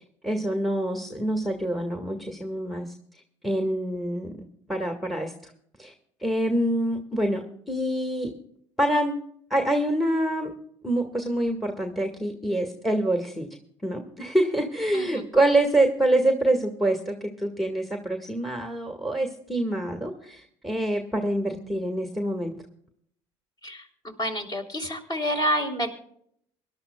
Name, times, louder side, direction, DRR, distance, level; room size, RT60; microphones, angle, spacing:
voice 1, 0.2-2.9 3.4-5.3 5.8-5.9 6.2-8.3 8.8-9.2 9.5-10.5 10.8-13.5 13.8-22.5, right 1 dB, ahead, 4 dB, 1.8 m, -26 dB
voice 2, 23.6-25.9, equal, 25° left, 3 dB, 3.4 m, -29 dB
25.0 x 12.0 x 2.3 m, 0.68 s
hypercardioid pair, 60°, 15 cm